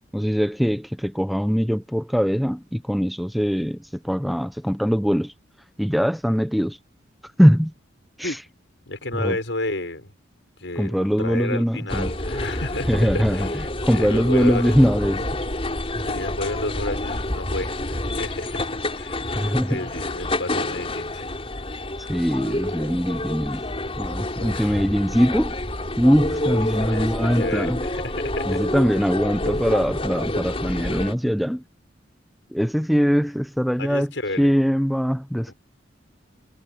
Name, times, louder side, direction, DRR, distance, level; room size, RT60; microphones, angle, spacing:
voice 1, 0.1-5.3 5.8-6.8 7.4-7.7 8.2-8.4 9.1-9.4 10.8-12.1 12.9-15.2 19.3-19.8 22.1-23.7 24.0-25.6 26.0-27.8 28.5-31.6 32.5-34.1 34.4-35.5, equal, ahead, 0.8 m, -22 dB
voice 2, 8.9-10.1 10.6-13.5 13.9-14.7 16.0-18.6 18.9-19.3 19.7-21.3 24.4-24.7 26.4-28.6 33.8-34.5 35.5-35.6, left 2 dB, 75° left, 6.4 m, -31 dB
sound 1, 11.9-31.1, left 1 dB, 30° left, 4.1 m, -28 dB
head